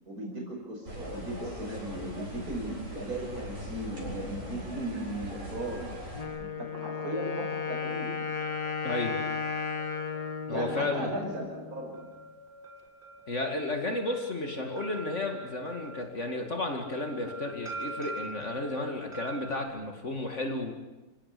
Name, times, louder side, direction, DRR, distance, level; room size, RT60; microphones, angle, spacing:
voice 1, 0.1-5.8 6.4-8.1 10.5-11.9, right 1 dB, 80° right, 0 dB, 5.7 m, -37 dB
sound 1, 0.8-6.2, equal, 60° right, 8.3 m, -40 dB
Wind instrument woodwind instrument, 6.1-11.9, left 5 dB, 25° left, 1.8 m, -34 dB
sound 2, 8.2-19.7, right 2 dB, 45° right, 6.3 m, -45 dB
voice 2, 8.8-9.2 10.5-11.1 13.3-20.7, left 2 dB, 50° left, 3 dB, 2.5 m, -33 dB
28.0 x 17.0 x 8.5 m, 1.1 s
omnidirectional pair, 1.6 m